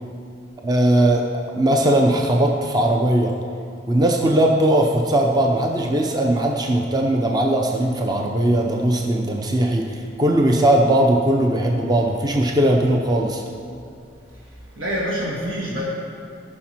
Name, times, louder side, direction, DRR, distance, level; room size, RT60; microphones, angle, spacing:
voice 1, 0.6-3.4 3.9-13.4, right 1 dB, 20° right, 1 dB, 0.5 m, -19 dB
voice 2, 14.3-15.8, equal, 85° right, -6 dB, 1.8 m, -27 dB
15.0 x 6.0 x 4.5 m, 2.6 s
head